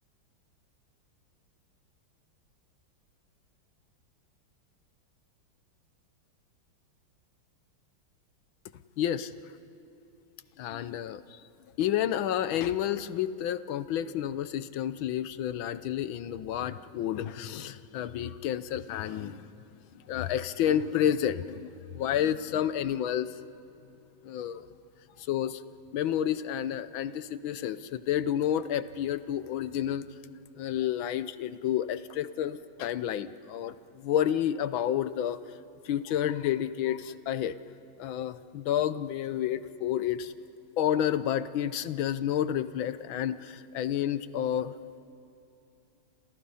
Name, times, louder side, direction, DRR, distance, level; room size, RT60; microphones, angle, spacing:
voice 1, 9.0-9.3 10.6-11.2 11.8-19.5 20.1-23.3 24.2-24.6 25.3-25.6 25.9-30.0 30.6-35.4 35.8-37.6 38.0-40.3 40.8-44.7, left 10 dB, 75° left, 14 dB, 1.5 m, -30 dB
30.0 x 28.0 x 5.6 m, 2.7 s
omnidirectional pair, 2.2 m